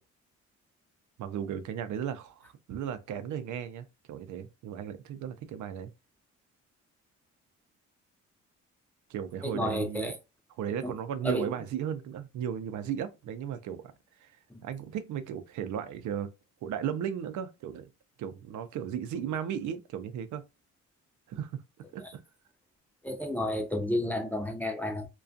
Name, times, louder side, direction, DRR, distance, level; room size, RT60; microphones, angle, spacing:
voice 1, 1.2-5.9 9.1-10.1 10.6-13.9 14.2-14.3 14.6-16.3 16.6-17.9 18.2-20.4 21.3-21.6 21.9-22.1, right 9 dB, 75° right, 0.5 m, -35 dB
voice 2, 9.4-10.1 10.8-10.9 11.2-11.4 23.0-25.1, left 1 dB, 5° left, 0.5 m, -31 dB
2.3 x 2.3 x 2.5 m
cardioid pair, 90°, 30 cm